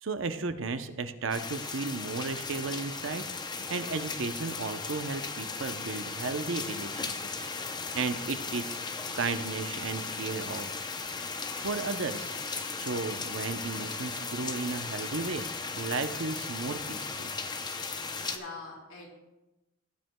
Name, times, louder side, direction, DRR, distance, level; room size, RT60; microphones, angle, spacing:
voice 1, 0.0-3.3 3.7-7.5 7.9-8.8 9.1-10.7 11.6-12.4 12.7-15.5 15.8-17.3, right 4 dB, 65° right, 9 dB, 0.6 m, -34 dB
sound 1, 1.3-18.4, left 4 dB, 20° left, 0.6 m, -37 dB
voice 2, 18.2-19.1, left 3 dB, 85° left, -3 dB, 3.5 m, -43 dB
17.0 x 9.3 x 2.2 m, 1.0 s
head